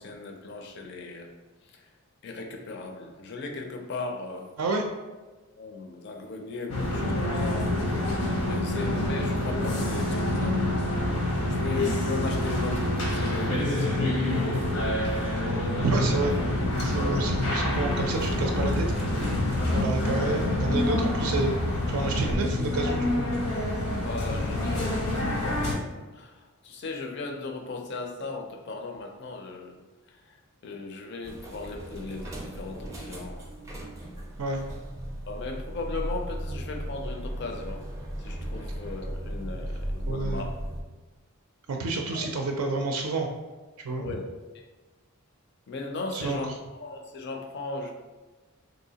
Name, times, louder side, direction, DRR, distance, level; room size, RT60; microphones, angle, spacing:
voice 1, 0.0-1.3 1.6-1.9 2.2-4.5 5.6-8.0 8.4-10.7 11.1-11.2 11.5-14.2 15.1-15.3 17.0-17.2 19.6-19.9 24.0-29.8 30.1-30.4 30.6-33.4 35.3-37.9 38.2-40.6 42.1-42.5 44.0-44.3 45.7-46.5 46.8-47.9, left 3 dB, 50° left, 2 dB, 0.4 m, -37 dB
sound 1, 6.7-25.7, left 1 dB, 80° left, 0.8 m, -27 dB
voice 2, 15.8-16.3 16.8-19.1 19.7-21.5 21.9-23.3 34.4-34.6 40.1-40.5 41.7-43.3 43.8-44.2 46.1-46.4, right 3 dB, 80° right, 2 dB, 0.4 m, -29 dB
sound 2, 31.2-40.8, right 1 dB, 15° right, 0.4 m, -36 dB
3.4 x 2.7 x 2.8 m, 1.2 s
head